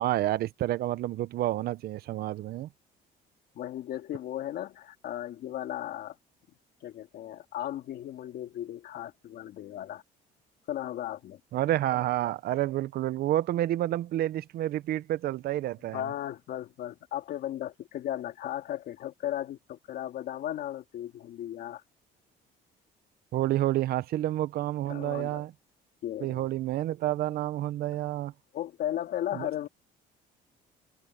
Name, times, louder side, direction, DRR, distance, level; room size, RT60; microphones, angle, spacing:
voice 1, 0.0-2.7 11.5-16.0 23.3-25.5 26.2-28.3 29.3-29.7, right 14 dB, 65° right, 0.7 m, -29 dB
voice 2, 3.5-6.2 6.8-10.0 10.7-11.4 15.9-21.8 24.9-25.5 26.0-26.5 28.5-29.7, left 12 dB, 70° left, 2.3 m, -36 dB
cardioid pair, 110°, 17 cm